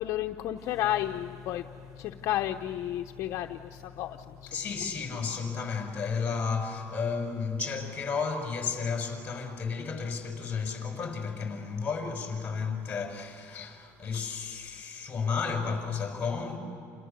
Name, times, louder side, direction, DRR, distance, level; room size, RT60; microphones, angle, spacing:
voice 1, 0.0-1.6 2.0-4.5, left 12 dB, 60° left, 0.9 m, -32 dB
sound 1, 0.6-9.5, left 6 dB, ahead, 5.9 m, -51 dB
voice 2, 4.5-16.6, left 5 dB, 20° left, 5.3 m, -32 dB
29.5 x 29.0 x 6.8 m
cardioid pair, 150°, 6 cm